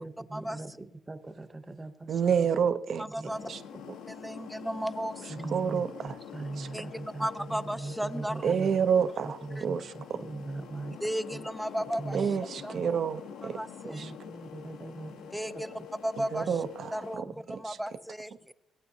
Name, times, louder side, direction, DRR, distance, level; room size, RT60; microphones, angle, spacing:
voice 1, 0.0-2.2 3.2-3.8 5.3-11.0 11.3-11.5 12.0-12.4 12.7-12.8 13.9-15.8 17.2-17.6, right 3 dB, 20° right, 9 dB, 0.8 m, -41 dB
voice 2, 2.1-3.1 3.5-3.6 5.5-6.2 6.6-6.7 8.4-10.2 12.1-13.6 14.0-14.1 16.2-17.3 17.7-17.8, right 7 dB, 60° right, 12 dB, 0.5 m, -29 dB
sound 1, 3.3-17.2, left 8 dB, 85° left, 0.7 m, -46 dB
voice 3, 4.1-5.3 6.7-6.8 7.2-8.6 9.6-9.7 11.0-12.2 12.6-13.0 13.5-14.0 15.3-15.7 16.0-16.5 16.9-17.2 17.6-18.5, equal, 5° right, 13 dB, 0.4 m, -34 dB
17.5 x 8.9 x 2.7 m, 0.84 s
cardioid pair, 90°, 0 cm